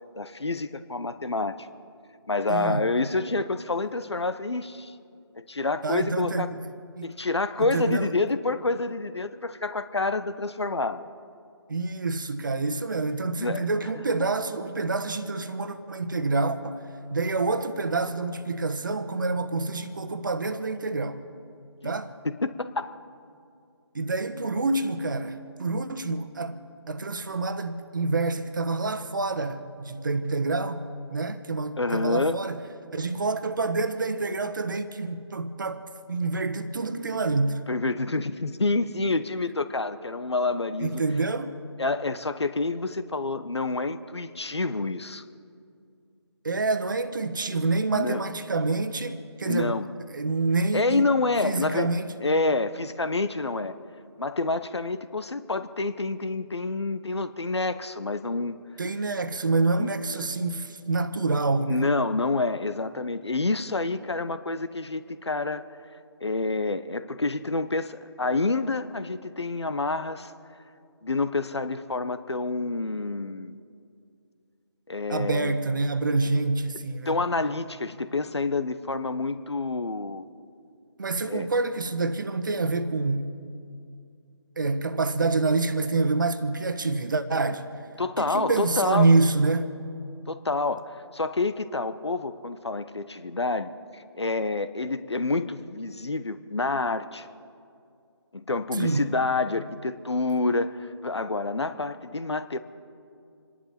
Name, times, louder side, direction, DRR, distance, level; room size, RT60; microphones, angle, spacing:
voice 1, 0.2-1.6 2.3-4.9 5.3-6.5 7.0-11.1 13.4-13.7 14.2-14.3 21.8-21.9 22.2-22.9 31.8-32.4 37.7-41.0 41.8-45.2 47.9-48.2 49.4-49.9 50.7-51.9 52.2-53.7 54.2-58.6 59.8-59.9 61.7-65.6 66.2-70.3 71.0-73.6 74.9-75.6 77.1-80.3 81.3-81.5 88.0-89.1 90.3-97.3 98.3-102.6, left 3 dB, 70° left, 1.0 m, -28 dB
voice 2, 2.5-3.1 5.8-6.6 7.0-7.1 7.7-8.1 11.7-16.8 17.1-21.2 21.8-22.1 23.9-26.6 26.9-30.8 31.1-32.6 32.9-37.7 40.8-41.5 46.4-49.8 50.1-51.1 51.4-52.1 58.8-61.9 75.1-77.2 81.0-83.3 84.6-87.7 88.2-89.7 98.8-99.1, right 3 dB, 45° right, 1.2 m, -27 dB
28.5 x 11.0 x 4.4 m
figure-of-eight pair, 155°, 15 cm